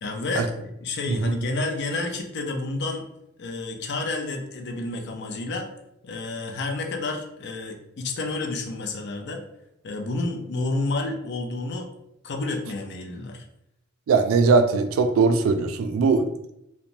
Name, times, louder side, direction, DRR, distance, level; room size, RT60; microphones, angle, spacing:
voice 1, 0.0-3.1 3.4-5.7 6.0-9.4 9.8-11.9 12.2-13.4, left 2 dB, 55° left, 3 dB, 0.5 m, -30 dB
voice 2, 14.1-16.2, right 4 dB, 85° right, 8 dB, 0.3 m, -20 dB
2.9 x 2.1 x 2.5 m, 0.82 s
head